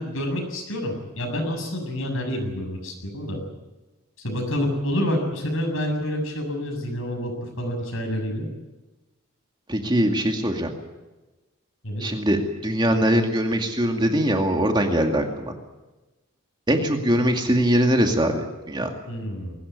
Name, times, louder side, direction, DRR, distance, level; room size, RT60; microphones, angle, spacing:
voice 1, 0.0-3.4 4.2-8.5 11.8-12.0 19.1-19.6, equal, 65° left, 4 dB, 7.3 m, -28 dB
voice 2, 9.7-10.7 12.0-15.5 16.7-18.9, equal, 20° right, 3 dB, 2.3 m, -22 dB
21.5 x 18.0 x 9.6 m, 1.1 s
head